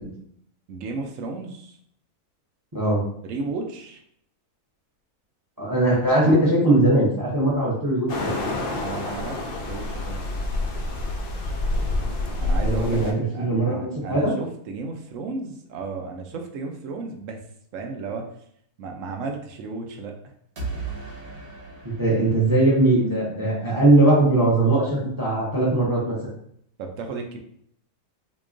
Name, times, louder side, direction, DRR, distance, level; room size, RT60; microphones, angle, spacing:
voice 1, 0.7-1.8 3.2-4.0 8.8-10.4 12.4-17.4 17.7-18.3 18.8-20.2 26.8-27.4, right 3 dB, 70° right, 3 dB, 0.8 m, -34 dB
voice 2, 2.7-3.0 5.6-8.5 12.6-14.3 21.8-26.2, right 2 dB, 20° right, -5 dB, 0.6 m, -20 dB
sound 1, 8.1-13.1, left 2 dB, 75° left, 0.5 m, -27 dB
sound 2, 20.6-23.5, right 4 dB, 45° right, 1.1 m, -37 dB
3.8 x 2.9 x 2.5 m, 0.68 s
omnidirectional pair, 1.7 m